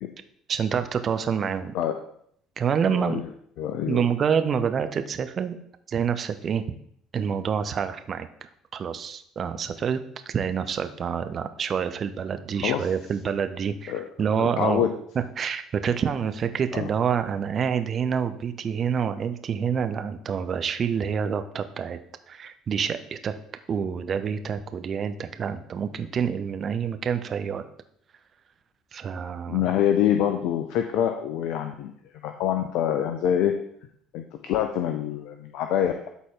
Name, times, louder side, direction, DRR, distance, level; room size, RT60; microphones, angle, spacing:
voice 1, 0.5-1.7 2.6-3.2 3.9-5.6 5.9-6.6 7.1-10.0 10.3-14.8 15.4-22.0 22.3-23.3 23.7-27.6 28.9-29.7, right 7 dB, 45° right, 9 dB, 0.7 m, -27 dB
voice 2, 3.0-3.3 3.6-4.0 12.6-12.9 13.9-14.0 14.4-14.9 16.7-16.9 29.5-33.5 34.1-36.1, left 10 dB, 60° left, 6 dB, 0.6 m, -25 dB
12.5 x 4.1 x 3.8 m, 0.68 s
figure-of-eight pair, 55°, 0 cm